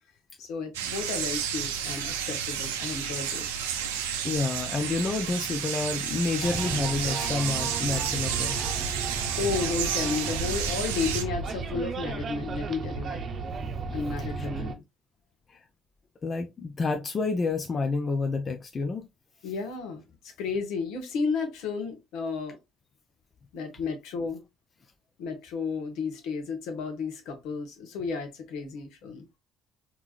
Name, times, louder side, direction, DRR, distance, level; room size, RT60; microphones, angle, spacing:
voice 1, 0.4-3.5 9.4-13.2 13.9-14.8 19.4-20.0 20.4-22.6 23.5-24.4 25.2-29.3, left 4 dB, 65° left, 1.0 m, -32 dB
sound 1, 0.7-11.2, right 8 dB, 80° right, 0.5 m, -31 dB
voice 2, 4.2-9.0 14.4-14.5 15.5-15.6 16.2-19.1, left 3 dB, 40° left, 0.5 m, -29 dB
sound 2, 6.4-14.8, right 4 dB, 45° right, 0.7 m, -34 dB
4.6 x 2.9 x 2.3 m
hypercardioid pair, 50°, 0 cm